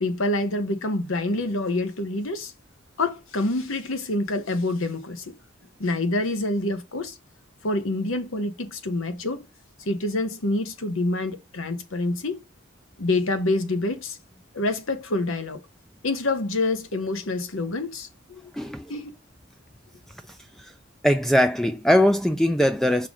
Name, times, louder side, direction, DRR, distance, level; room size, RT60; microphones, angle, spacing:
voice 1, 0.0-2.5 3.0-5.3 5.8-7.2 7.6-9.5 9.8-12.4 13.0-14.2 14.5-15.6 16.0-18.5 18.9-19.1, left 2 dB, 90° left, 1.1 m, -27 dB
voice 2, 18.5-18.9 20.3-20.7 21.0-23.1, equal, ahead, 0.3 m, -21 dB
5.8 x 3.8 x 4.9 m
head